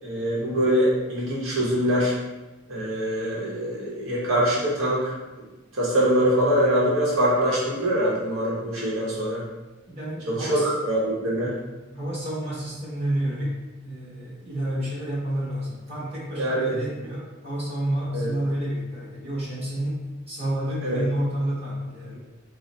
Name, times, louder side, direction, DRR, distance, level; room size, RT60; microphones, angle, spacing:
voice 1, 0.0-2.1 2.7-5.1 5.7-9.4 10.3-11.5 16.4-16.8 18.1-18.3 20.8-21.0, equal, 85° right, -6 dB, 1.0 m, -23 dB
voice 2, 9.9-10.7 11.9-22.2, right 1 dB, 30° right, -8 dB, 1.4 m, -30 dB
3.8 x 2.1 x 4.1 m, 1.1 s
head